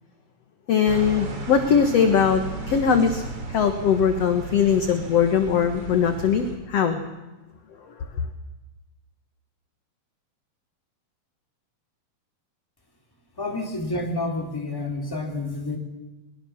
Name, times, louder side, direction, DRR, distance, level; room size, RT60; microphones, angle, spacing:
voice 1, 0.7-3.2 3.5-7.0 7.9-8.0, left 7 dB, 55° left, 7 dB, 2.1 m, -21 dB
sound 1, 0.9-6.6, right 2 dB, 40° right, 3.9 m, -35 dB
voice 2, 13.4-15.8, left 2 dB, 5° left, 2 dB, 3.2 m, -29 dB
23.0 x 22.0 x 7.4 m, 1.1 s
omnidirectional pair, 4.2 m